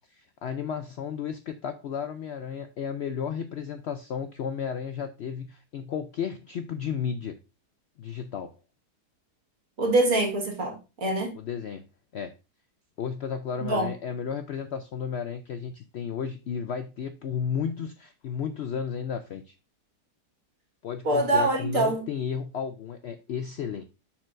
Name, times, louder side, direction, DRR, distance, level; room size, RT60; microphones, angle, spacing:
voice 1, 0.1-7.4 8.0-8.5 11.3-11.8 12.1-12.3 13.0-19.5 20.8-23.8, left 7 dB, 85° left, 0.5 m, -33 dB
voice 2, 9.8-11.3 13.7-13.9 21.0-22.0, right 2 dB, 55° right, 2.1 m, -24 dB
10.5 x 4.4 x 2.5 m
omnidirectional pair, 1.7 m